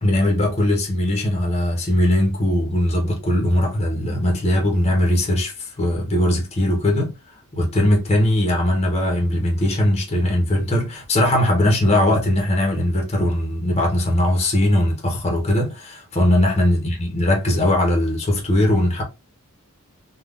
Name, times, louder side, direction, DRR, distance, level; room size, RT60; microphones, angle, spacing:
voice 1, 0.0-7.1 7.5-19.0, left 1 dB, 30° left, 0.9 m, -20 dB
3.6 x 2.4 x 2.4 m
head